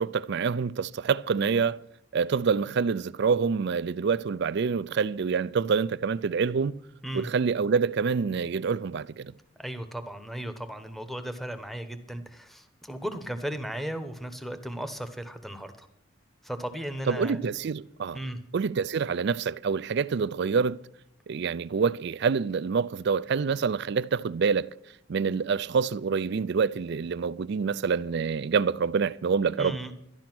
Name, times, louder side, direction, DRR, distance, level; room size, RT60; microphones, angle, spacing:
voice 1, 0.0-1.8 2.1-6.8 7.1-9.3 17.1-18.2 18.5-20.8 21.3-24.7 25.1-29.8, right 5 dB, 60° right, 0.4 m, -26 dB
voice 2, 9.6-15.9 16.4-17.5 18.1-18.4 29.5-29.9, right 1 dB, ahead, 1.0 m, -36 dB
12.5 x 11.5 x 6.0 m
head